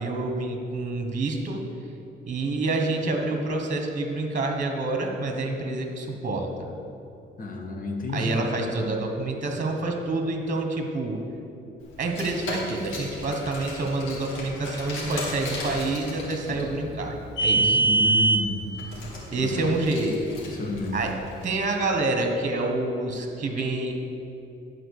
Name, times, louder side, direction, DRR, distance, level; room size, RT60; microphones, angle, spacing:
voice 1, 0.0-1.6 2.2-6.7 8.1-11.2 12.0-17.8 19.3-20.1 20.9-21.1 21.4-24.0, right 2 dB, 40° right, 3 dB, 1.2 m, -27 dB
voice 2, 7.4-8.3 17.6-18.6 19.4-19.7 20.6-21.0, left 3 dB, 45° left, 2 dB, 1.4 m, -30 dB
Car, 12.0-21.5, right 2 dB, 85° left, 2.2 m, -28 dB
11.0 x 4.4 x 6.6 m, 2.7 s
cardioid pair, 90°, 20 cm